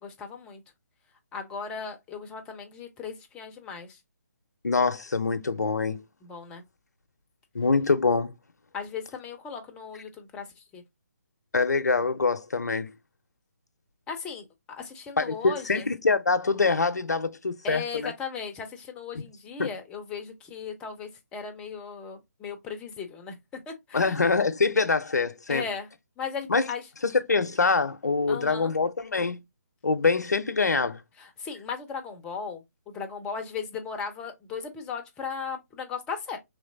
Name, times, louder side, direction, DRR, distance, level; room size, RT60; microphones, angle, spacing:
voice 1, 0.0-0.6 1.3-4.0 6.2-6.6 8.7-10.8 14.1-15.9 17.6-23.4 23.7-24.2 25.5-25.9 26.2-26.9 28.3-28.7 31.2-36.4, left 6 dB, 10° left, 0.5 m, -37 dB
voice 2, 4.6-6.0 7.5-8.3 11.5-12.9 15.2-18.1 19.2-19.3 19.6-19.7 23.9-25.6 26.5-26.7 27.3-29.4 29.8-31.0, left 4 dB, 70° left, 0.5 m, -24 dB
3.8 x 3.1 x 2.5 m
figure-of-eight pair, 140°, 9 cm